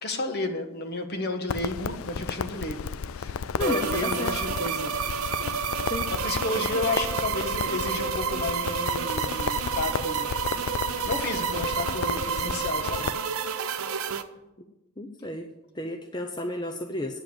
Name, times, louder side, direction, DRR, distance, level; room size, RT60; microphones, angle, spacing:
voice 1, 0.0-4.9 6.1-10.3 11.1-13.1, left 2 dB, 50° left, 6 dB, 1.3 m, -32 dB
Crackle, 1.5-13.1, left 6 dB, 75° left, 0.4 m, -34 dB
voice 2, 3.6-4.4 5.8-6.1 15.0-15.5 15.7-17.2, left 1 dB, 20° left, 4 dB, 0.6 m, -32 dB
sound 1, 3.6-14.2, right 6 dB, 85° right, 0.8 m, -30 dB
9.0 x 7.5 x 7.8 m, 0.97 s
head